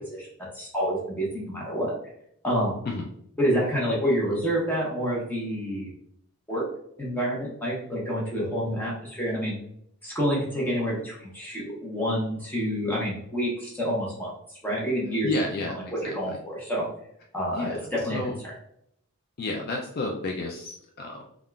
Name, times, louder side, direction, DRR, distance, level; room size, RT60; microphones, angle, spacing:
voice 1, 0.5-1.9 2.4-2.8 3.4-5.9 6.5-6.6 7.0-9.6 10.0-15.3 16.0-16.9 17.3-18.2, equal, 10° left, -5 dB, 0.9 m, -28 dB
voice 2, 15.2-16.4 17.5-18.4 19.4-21.2, left 2 dB, 45° left, 0 dB, 0.3 m, -31 dB
3.6 x 2.4 x 2.2 m, 0.72 s
head